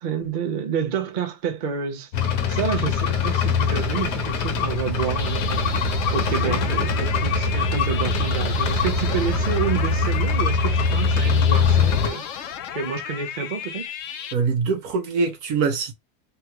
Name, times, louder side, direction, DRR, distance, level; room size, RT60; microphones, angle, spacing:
voice 1, 0.0-5.7 6.1-13.9, right 7 dB, 50° right, 0.5 m, -29 dB
sound 1, 2.1-12.1, left 4 dB, 85° left, 1.2 m, -22 dB
sound 2, 5.2-14.3, left 9 dB, 70° left, 0.8 m, -34 dB
voice 2, 14.3-15.9, right 5 dB, 70° right, 1.2 m, -24 dB
3.4 x 2.2 x 2.9 m
omnidirectional pair, 1.7 m